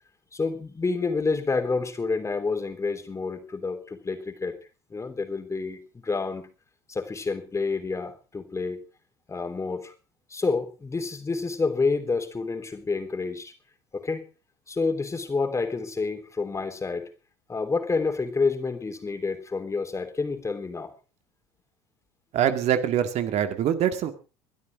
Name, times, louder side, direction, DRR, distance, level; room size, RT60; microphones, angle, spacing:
voice 1, 0.3-4.5 4.9-6.4 6.9-8.8 9.3-9.9 10.3-13.5 13.9-14.2 14.7-17.1 17.5-20.9, left 4 dB, 20° left, 8 dB, 3.5 m, -28 dB
voice 2, 22.3-24.1, right 10 dB, 50° right, 9 dB, 2.0 m, -24 dB
22.0 x 12.0 x 3.6 m, 0.33 s
hypercardioid pair, 80°, 14 cm